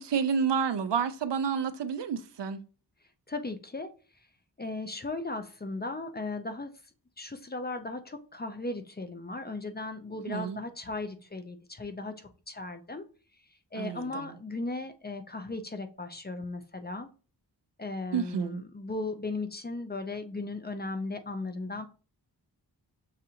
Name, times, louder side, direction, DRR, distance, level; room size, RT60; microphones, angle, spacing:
voice 1, 0.0-2.6 10.3-10.6 13.7-14.3 18.1-18.6, right 6 dB, 80° right, 0.6 m, -30 dB
voice 2, 3.3-3.9 4.6-6.7 7.2-13.0 13.7-17.1 17.8-21.9, left 2 dB, 25° left, 0.5 m, -36 dB
6.5 x 2.5 x 2.8 m
wide cardioid pair, 85°, 42 cm